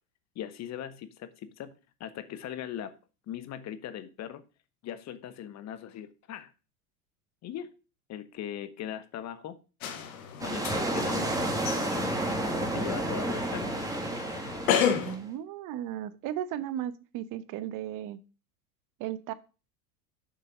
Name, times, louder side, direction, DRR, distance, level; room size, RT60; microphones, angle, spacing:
voice 1, 0.3-1.7 2.0-2.9 3.3-4.4 4.8-6.5 7.4-7.8 8.1-9.6 10.4-13.8, left 10 dB, 35° left, 1.0 m, -40 dB
sound 1, 9.8-15.2, left 8 dB, 70° left, 1.4 m, -33 dB
sound 2, 10.4-15.3, right 1 dB, 10° right, 1.8 m, -31 dB
voice 2, 15.0-18.2 19.0-19.3, right 11 dB, 45° right, 0.9 m, -35 dB
7.0 x 5.7 x 4.9 m
hypercardioid pair, 85°, 44 cm